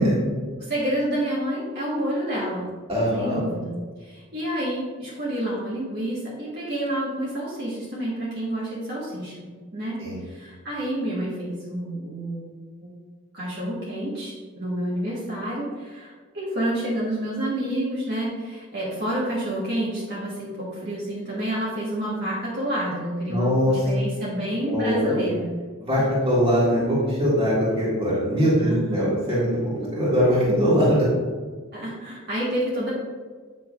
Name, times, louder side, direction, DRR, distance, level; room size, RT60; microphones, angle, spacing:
voice 1, 0.6-2.7 3.1-9.5 9.7-12.5 12.8-12.9 13.3-25.5 26.0-26.1 28.6-29.2 31.7-32.9, right 1 dB, 50° right, -7 dB, 1.4 m, -29 dB
voice 2, 2.9-3.4 10.0-10.2 23.3-23.7 24.6-25.1 25.8-26.0 26.3-31.1, equal, 25° right, -8 dB, 1.8 m, -21 dB
8.5 x 5.6 x 2.4 m, 1.5 s
head